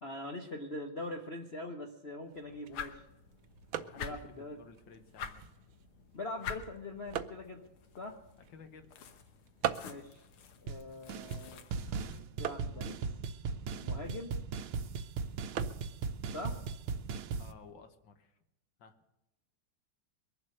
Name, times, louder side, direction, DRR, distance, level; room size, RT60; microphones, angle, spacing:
voice 1, 0.0-3.0 3.9-4.6 6.1-7.6 8.0-8.2 9.8-10.2 10.6-11.7 12.4-13.0 13.8-14.3 16.3-16.6, left 2 dB, 40° left, 3 dB, 1.0 m, -42 dB
sound 1, 2.2-17.7, right 10 dB, 75° right, 1.5 m, -45 dB
sound 2, 2.7-12.2, left 6 dB, 85° left, 2.0 m, -48 dB
voice 2, 3.8-5.4 8.5-9.0 17.4-18.4 18.8-19.0, left 5 dB, 65° left, 7 dB, 1.8 m, -55 dB
sound 3, 10.7-10.8 11.1-11.4 11.7-17.5, right 5 dB, 90° right, 1.7 m, -38 dB
22.5 x 7.6 x 6.5 m, 0.94 s
omnidirectional pair, 2.3 m